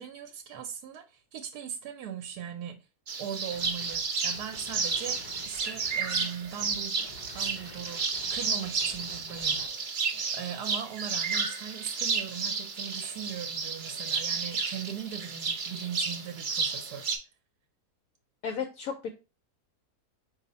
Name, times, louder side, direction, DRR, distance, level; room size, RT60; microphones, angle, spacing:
voice 1, 0.0-2.8 3.2-7.0 7.3-17.1, right 9 dB, 75° right, 1.1 m, -40 dB
sound 1, 3.1-17.2, right 5 dB, 55° right, 0.5 m, -32 dB
sound 2, 3.5-4.0 4.3-9.7, left 2 dB, 45° left, 0.6 m, -50 dB
voice 2, 18.4-19.1, left 6 dB, 70° left, 0.9 m, -33 dB
4.8 x 2.7 x 4.0 m
omnidirectional pair, 1.7 m